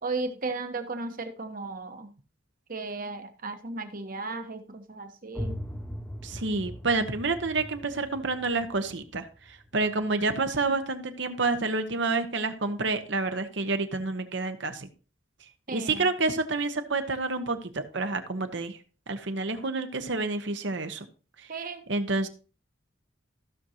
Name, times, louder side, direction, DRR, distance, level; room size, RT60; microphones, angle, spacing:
voice 1, 0.0-2.1 2.7-5.6 15.7-16.1 21.5-21.8, right 3 dB, 45° right, 7 dB, 1.2 m, -35 dB
sound 1, 5.3-10.9, equal, 10° left, 0.8 m, -40 dB
voice 2, 6.2-14.9 15.7-18.8 19.1-21.0 21.9-22.3, right 3 dB, 65° right, 8 dB, 1.1 m, -29 dB
15.5 x 6.3 x 2.9 m, 0.36 s
head